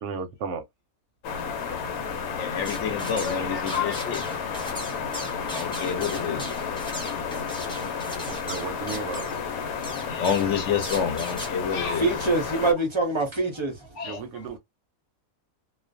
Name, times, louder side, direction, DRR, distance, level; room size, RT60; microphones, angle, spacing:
voice 1, 0.0-0.6 8.3-9.3 14.0-14.6, right 5 dB, 70° right, 0.8 m, -34 dB
sound 1, 1.2-12.7, left 6 dB, 85° left, 1.1 m, -32 dB
voice 2, 2.3-4.2 5.5-7.1 9.9-12.1 14.0-14.2, left 7 dB, 60° left, 1.0 m, -29 dB
sound 2, 2.6-3.4 3.7-9.4 9.8-10.5 10.8-11.5, equal, 5° left, 0.8 m, -38 dB
voice 3, 12.0-13.9, right 2 dB, 35° right, 0.5 m, -24 dB
2.5 x 2.2 x 2.5 m
omnidirectional pair, 1.5 m